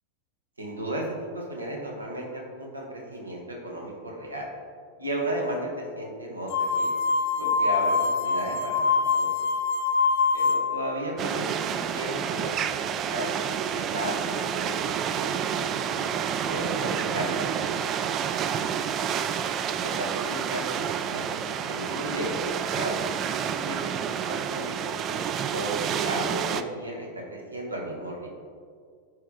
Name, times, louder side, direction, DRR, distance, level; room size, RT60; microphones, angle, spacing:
voice 1, 0.6-4.5 5.0-6.9 7.4-9.3 10.3-18.4 19.5-20.8 21.0-22.4 22.7-23.0 23.4-28.3, right 1 dB, 80° right, 0 dB, 1.4 m, -35 dB
sound 1, 6.5-10.9, left 4 dB, 50° left, 0.9 m, -24 dB
sound 2, 11.2-26.6, right 8 dB, 30° right, 0.3 m, -29 dB
10.5 x 4.9 x 3.7 m, 2.1 s
figure-of-eight pair, 90°, 0 cm